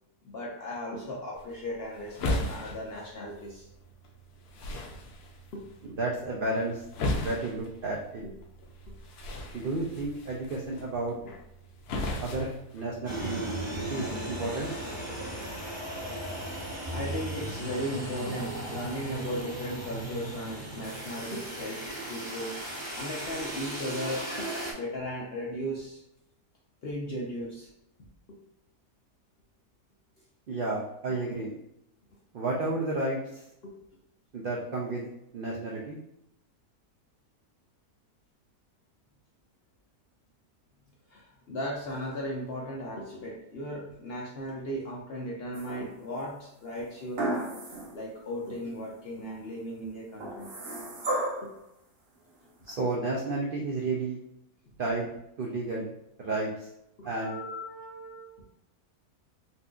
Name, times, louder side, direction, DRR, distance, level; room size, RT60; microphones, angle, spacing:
voice 1, 0.2-3.7 5.5-5.6 8.2-8.3 8.8-8.9 14.5-14.6 16.7-22.6 22.9-26.0 26.8-27.7 28.3-28.4 33.6-33.7 41.1-47.5 47.9-50.5 51.4-51.5 57.0-58.4, equal, 60° left, -3 dB, 0.6 m, -37 dB
sound 1, 1.3-13.4, left 1 dB, 80° left, 1.1 m, -37 dB
voice 2, 6.0-6.8 7.2-8.2 9.5-11.2 12.2-13.4 13.9-14.7 30.5-31.5 32.3-33.4 34.3-36.0 52.7-54.2 54.8-55.1 55.4-55.9 56.2-56.7 57.0-57.4, right 2 dB, 75° right, -3 dB, 0.5 m, -32 dB
sound 2, 13.0-24.7, right 1 dB, 30° right, 0.6 m, -36 dB
sound 3, 45.5-46.2 47.2-48.0 48.5-48.6 50.2-51.6 52.7-52.8, right 1 dB, 50° right, 0.9 m, -33 dB
4.1 x 2.6 x 2.3 m, 0.81 s
omnidirectional pair, 1.6 m